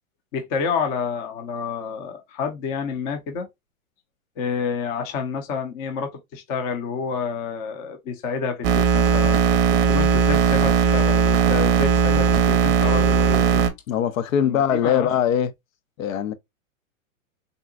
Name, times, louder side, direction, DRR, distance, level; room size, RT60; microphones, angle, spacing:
voice 1, 0.3-3.5 4.4-9.4 9.9-13.6 14.4-15.1, left 5 dB, 25° left, 0.5 m, -29 dB
sound 1, 8.6-13.7, right 6 dB, 45° right, 0.6 m, -18 dB
voice 2, 13.9-15.5 16.0-16.3, left 9 dB, 75° left, 0.7 m, -21 dB
3.8 x 2.1 x 2.4 m
hypercardioid pair, 150°, 41 cm